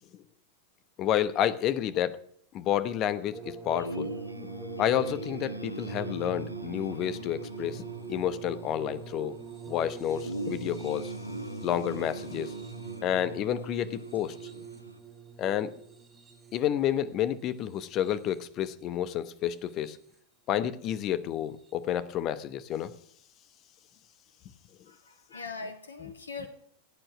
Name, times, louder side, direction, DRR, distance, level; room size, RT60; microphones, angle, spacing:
voice 1, 1.0-2.2 2.5-4.1 4.8-7.8 8.1-9.4 9.7-11.1 11.6-12.5 13.0-14.3 15.4-15.7 16.5-20.0 20.5-22.9, left 10 dB, 35° left, 16 dB, 1.0 m, -30 dB
sound 1, 3.3-18.6 19.4-20.1 21.6-21.7, right 7 dB, 15° right, 2.6 m, -44 dB
sound 2, 3.8-15.0, right 1 dB, 90° left, 0.9 m, -41 dB
voice 2, 24.9-26.5, left 4 dB, 70° left, 7 dB, 2.3 m, -41 dB
16.5 x 9.0 x 5.9 m, 0.65 s
figure-of-eight pair, 90°, 0 cm